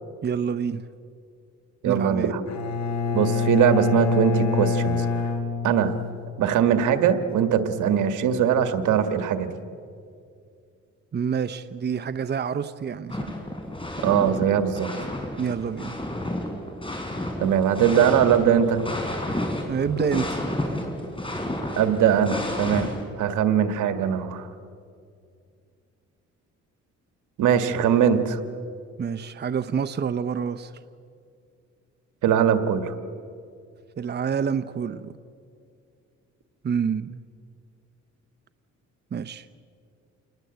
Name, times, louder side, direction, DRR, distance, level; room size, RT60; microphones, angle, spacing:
voice 1, 0.2-0.8 1.8-2.3 11.1-13.3 15.4-16.0 19.7-20.5 29.0-30.7 34.0-35.2 36.6-37.2 39.1-39.5, right 7 dB, 35° right, 12 dB, 0.8 m, -27 dB
voice 2, 1.8-2.4 3.1-5.1 5.6-6.0 6.4-9.5 14.0-14.9 17.4-18.8 21.8-22.9 23.2-24.5 27.4-28.4 32.2-32.9, right 8 dB, 80° right, 8 dB, 1.8 m, -21 dB
Bowed string instrument, 2.5-6.3, left 4 dB, 65° left, 3.6 m, -25 dB
sound 1, 13.1-14.4 14.7-23.0, left 1 dB, 15° left, 5.7 m, -31 dB
28.0 x 20.0 x 8.0 m, 2.3 s
cardioid pair, 90°, 30 cm